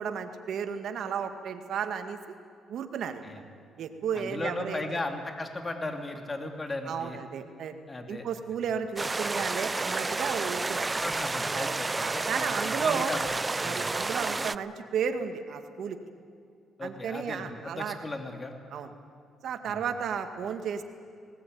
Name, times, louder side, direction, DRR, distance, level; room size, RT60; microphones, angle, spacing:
voice 1, 0.0-2.2 2.7-3.3 3.8-4.8 6.9-7.7 8.1-10.9 11.5-13.2 13.6-16.0 16.8-18.0 18.7-18.9 19.4-20.8, right 7 dB, 70° right, 7 dB, 1.9 m, -33 dB
voice 2, 4.1-7.2 7.9-8.2 11.0-13.2 13.6-13.9 16.8-18.5 19.7-19.8, left 2 dB, 25° left, 5 dB, 2.7 m, -36 dB
sound 1, 9.0-14.6, right 3 dB, 20° right, 0.4 m, -30 dB
19.0 x 19.0 x 9.4 m, 2.4 s
cardioid pair, 90°, 0 cm